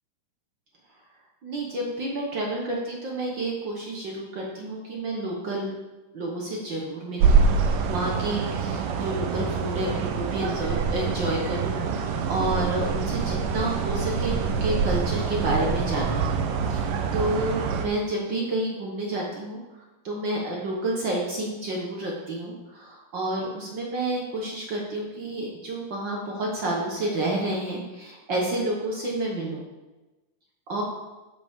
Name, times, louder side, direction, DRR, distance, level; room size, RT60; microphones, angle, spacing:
voice 1, 1.4-5.7 6.1-16.2 16.7-16.9 17.1-19.6 20.0-29.6 30.7-30.8, right 1 dB, 65° right, -2 dB, 1.1 m, -30 dB
sound 1, 7.2-17.9, right 5 dB, 80° right, 2.5 m, -25 dB
11.0 x 8.3 x 3.7 m, 1.1 s
omnidirectional pair, 3.9 m